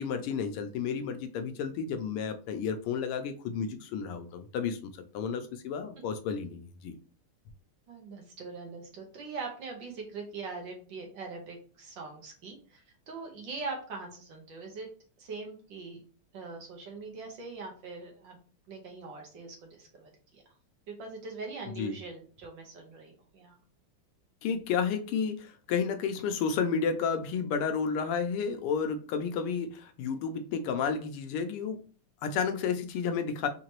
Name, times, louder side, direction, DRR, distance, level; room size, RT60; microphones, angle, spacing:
voice 1, 0.0-7.0 21.8-22.0 24.4-31.8 32.2-33.5, left 6 dB, 85° left, 7 dB, 1.6 m, -31 dB
voice 2, 7.9-14.9 15.2-16.0 16.3-18.4 18.7-20.4 20.9-23.6, right 4 dB, 65° right, 1 dB, 1.5 m, -42 dB
4.5 x 2.8 x 2.9 m, 0.40 s
omnidirectional pair, 2.4 m